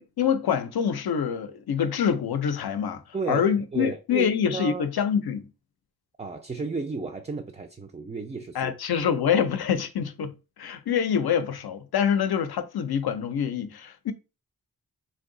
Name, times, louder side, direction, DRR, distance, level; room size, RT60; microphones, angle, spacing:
voice 1, 0.0-3.0 3.3-5.5 8.5-14.1, left 7 dB, 75° left, 0.5 m, -26 dB
voice 2, 3.1-3.5 3.7-4.9 6.2-8.7, right 4 dB, 20° right, 0.3 m, -33 dB
2.6 x 2.2 x 3.7 m
wide cardioid pair, 65°, 38 cm